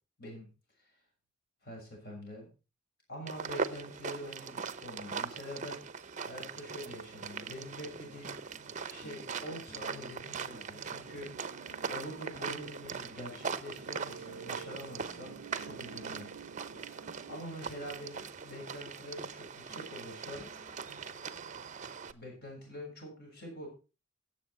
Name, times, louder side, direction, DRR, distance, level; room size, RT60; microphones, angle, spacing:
voice 1, 0.2-0.5 0.8-0.9 1.6-2.5 3.1-8.4 8.9-16.3 17.3-20.5 22.1-23.7, equal, 50° left, 0 dB, 6.7 m, -45 dB
sound 1, 3.3-22.1, right 5 dB, 35° right, 0.7 m, -41 dB
sound 2, 7.8-21.9, equal, 15° left, 1.3 m, -59 dB
sound 3, 11.1-17.4, right 6 dB, 85° right, 0.6 m, -51 dB
17.0 x 7.2 x 4.3 m, 0.31 s
head